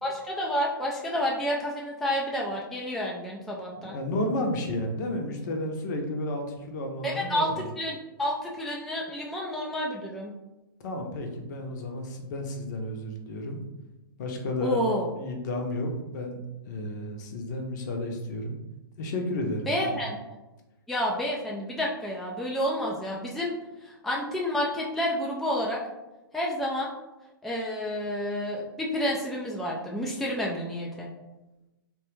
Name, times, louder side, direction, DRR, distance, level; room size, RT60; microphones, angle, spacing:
voice 1, 0.0-3.9 7.0-10.3 14.6-15.1 19.7-20.2 20.9-23.5 23.8-25.8 26.3-26.9 27.4-31.1, equal, ahead, -3 dB, 0.3 m, -30 dB
voice 2, 3.8-7.7 10.8-13.6 14.2-14.8 15.1-18.5 19.0-20.0, left 1 dB, 50° left, 3 dB, 0.7 m, -32 dB
3.1 x 2.2 x 3.0 m, 1.0 s
hypercardioid pair, 120°, 12 cm